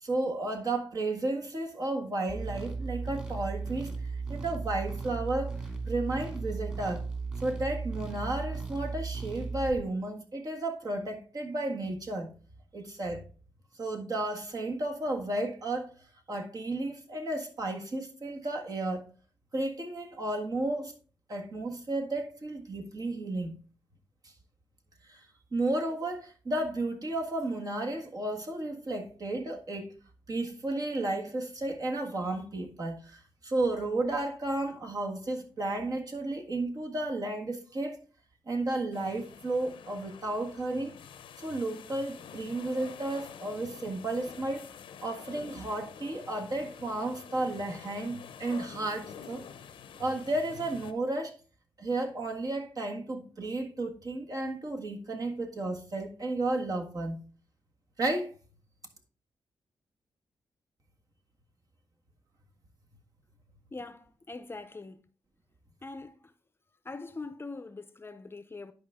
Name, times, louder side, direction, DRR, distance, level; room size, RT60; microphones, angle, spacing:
voice 1, 0.0-3.9 4.3-5.5 5.8-7.1 7.4-12.3 12.7-13.2 13.7-15.9 16.3-19.0 19.5-20.9 21.3-23.6 25.0-25.2 25.5-29.9 30.3-38.0 38.5-40.9 41.4-44.7 45.0-49.4 50.0-51.3 51.8-57.2 58.0-58.3, right 2 dB, 45° right, 1.7 m, -33 dB
sound 1, 2.3-9.8, right 4 dB, 15° right, 2.6 m, -36 dB
sound 2, 38.9-50.9, left 8 dB, 85° left, 0.7 m, -48 dB
voice 2, 63.7-65.0 65.8-66.3 66.8-68.7, left 3 dB, 30° left, 0.7 m, -42 dB
10.5 x 4.8 x 3.6 m
cardioid pair, 80°, 8 cm